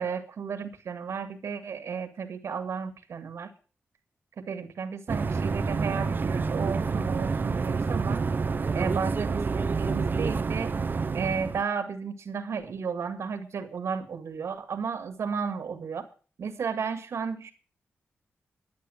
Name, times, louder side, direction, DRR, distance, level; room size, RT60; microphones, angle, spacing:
voice 1, 0.0-3.5 4.4-8.2 8.7-10.7 11.1-16.1 16.4-17.5, right 6 dB, 85° right, 9 dB, 2.0 m, -33 dB
sound 1, 5.1-11.6, right 4 dB, 45° right, 0.6 m, -28 dB
11.5 x 8.5 x 7.8 m, 0.38 s
wide cardioid pair, 85°, 5 cm